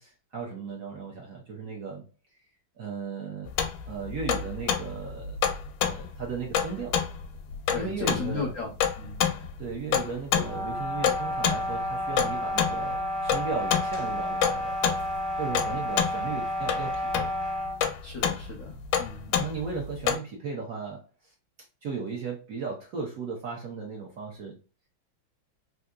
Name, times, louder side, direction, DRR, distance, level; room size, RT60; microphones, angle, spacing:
voice 1, 0.0-2.1 2.8-3.5 3.9-5.4 5.9-7.0 7.7-8.5 9.6-14.8 15.4-17.3 19.3-21.3 21.8-24.6, right 5 dB, 60° right, 1.0 m, -36 dB
sound 1, 3.5-20.2, left 8 dB, 85° left, 1.4 m, -28 dB
voice 2, 7.7-9.3 18.0-19.5, left 3 dB, 70° left, 0.7 m, -36 dB
sound 2, 10.3-17.8, left 1 dB, ahead, 0.5 m, -31 dB
3.6 x 2.6 x 2.2 m
omnidirectional pair, 2.2 m